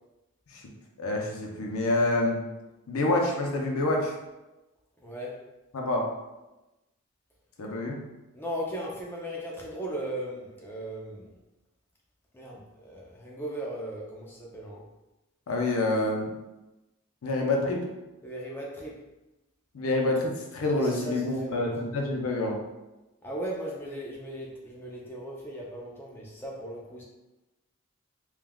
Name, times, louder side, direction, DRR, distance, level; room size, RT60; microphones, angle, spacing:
voice 1, 1.0-2.4 2.9-4.1 5.7-6.1 7.6-8.0 15.5-16.3 17.2-17.9 19.7-22.6, left 2 dB, 75° left, 0 dB, 0.5 m, -27 dB
voice 2, 5.0-5.4 8.3-11.3 12.3-14.8 18.2-19.0 20.8-21.7 23.2-27.0, right 1 dB, 10° left, -3 dB, 0.4 m, -37 dB
3.4 x 2.3 x 2.2 m, 1.0 s
head